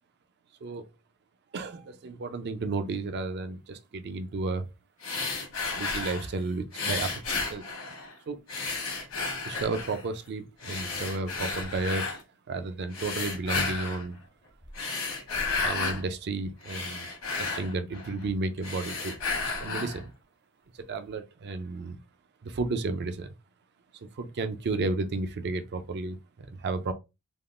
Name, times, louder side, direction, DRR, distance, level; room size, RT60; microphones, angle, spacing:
voice 1, 1.5-4.7 5.7-7.6 8.3-8.4 9.4-12.1 12.5-14.2 15.6-17.1 17.4-20.1 20.9-22.0 22.4-23.3 24.2-26.9, right 3 dB, 50° right, 0.4 m, -32 dB
sound 1, 5.0-6.3 6.7-8.1 8.5-10.0 10.6-12.2 12.9-14.1 14.6-16.0 16.4-18.3 18.6-20.0, left 4 dB, 70° left, 1.1 m, -33 dB
3.5 x 2.3 x 2.4 m
head